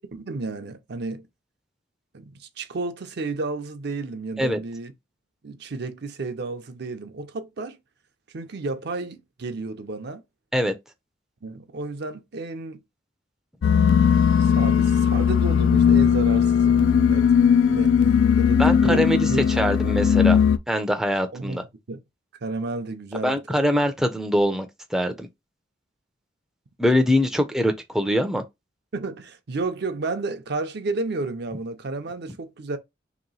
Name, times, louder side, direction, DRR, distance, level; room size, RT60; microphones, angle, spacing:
voice 1, 0.1-1.3 2.1-4.9 5.4-7.8 8.3-10.2 11.4-12.8 14.4-17.9 18.4-19.7 21.3-22.0 22.4-23.6 28.9-32.8, right 3 dB, 60° right, 0.6 m, -32 dB
sound 1, 13.6-20.6, left 7 dB, 80° left, 0.3 m, -18 dB
voice 2, 18.6-20.4 20.7-21.6 23.2-24.7 24.9-25.3 26.8-28.4, equal, ahead, 0.5 m, -23 dB
3.0 x 2.9 x 4.0 m
head